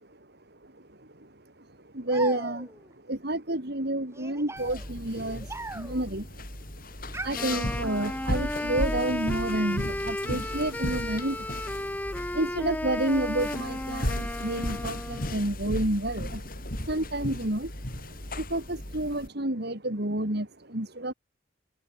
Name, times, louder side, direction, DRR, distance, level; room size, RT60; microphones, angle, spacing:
voice 1, 0.5-21.1, right 1 dB, 60° right, 3.8 m, -31 dB
sound 1, 2.1-2.9 4.1-6.1 7.1-8.2, right 2 dB, 15° right, 3.0 m, -40 dB
sound 2, 4.6-19.3, left 1 dB, 50° left, 7.1 m, -35 dB
Wind instrument woodwind instrument, 7.3-15.4, left 1 dB, 10° left, 1.4 m, -34 dB
head